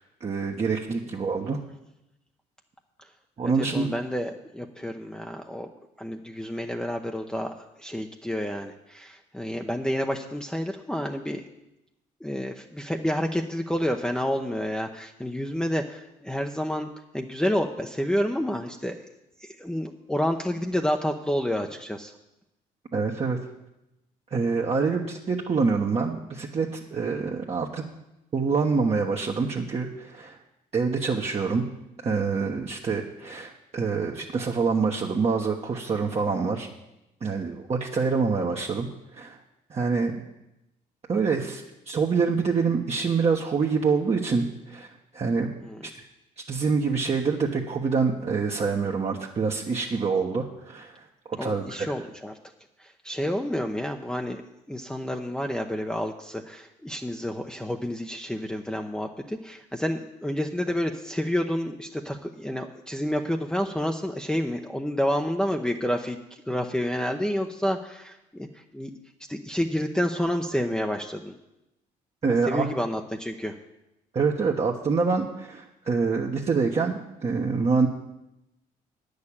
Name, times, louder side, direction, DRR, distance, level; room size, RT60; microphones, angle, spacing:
voice 1, 0.2-1.6 3.4-3.9 22.9-23.4 24.3-27.8 28.3-30.4 30.7-31.6 32.0-36.7 37.2-38.9 39.1-39.4 39.7-40.2 41.1-44.9 45.1-45.5 46.5-50.9 51.3-51.9 72.2-72.7 74.1-77.9, right 4 dB, 40° right, -2 dB, 1.2 m, -26 dB
voice 2, 3.4-5.7 6.0-11.4 12.2-16.9 17.1-19.0 19.4-22.1 45.6-45.9 51.4-52.4 52.8-54.4 54.7-66.2 66.5-68.9 69.3-71.3 72.4-73.6, equal, 5° left, 1 dB, 0.8 m, -29 dB
9.6 x 6.7 x 8.7 m, 0.91 s
supercardioid pair, 65°, 17 cm